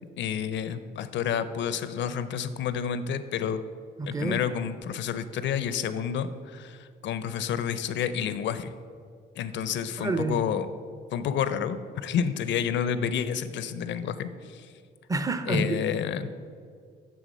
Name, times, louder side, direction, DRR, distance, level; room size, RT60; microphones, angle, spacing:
voice 1, 0.2-3.6 4.0-8.7 9.4-10.7 11.1-14.7 15.5-16.3, left 8 dB, 65° left, 13 dB, 0.5 m, -30 dB
voice 2, 4.0-4.4 10.0-10.4 15.1-15.8, right 2 dB, 15° right, 10 dB, 0.5 m, -28 dB
9.2 x 3.5 x 5.3 m, 2.1 s
cardioid pair, 90°, 20 cm